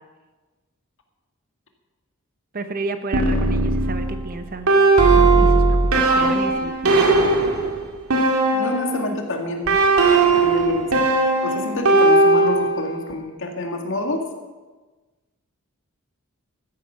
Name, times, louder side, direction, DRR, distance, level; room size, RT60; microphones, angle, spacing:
voice 1, 2.5-4.7 5.1-7.3, right 3 dB, 40° right, 8 dB, 0.9 m, -31 dB
sound 1, 3.1-9.1 9.7-12.9, right 3 dB, 80° right, 2.1 m, -18 dB
voice 2, 8.5-9.8 10.3-11.0 11.4-14.2, left 2 dB, 60° left, 4 dB, 1.8 m, -27 dB
13.5 x 10.0 x 5.6 m, 1.3 s
head